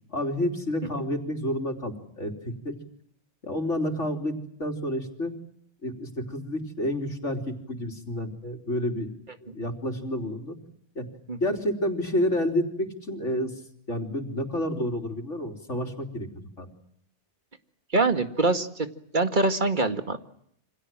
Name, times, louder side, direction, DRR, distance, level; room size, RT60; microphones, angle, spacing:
voice 1, 0.1-2.8 3.4-5.3 5.8-10.6 11.0-11.1 11.4-13.6 13.9-16.3 16.6-16.7, left 1 dB, 90° left, 5 dB, 3.9 m, -29 dB
voice 2, 17.9-18.9 19.1-20.2, right 3 dB, 40° right, 9 dB, 2.1 m, -24 dB
28.5 x 26.0 x 7.6 m, 0.70 s
omnidirectional pair, 1.2 m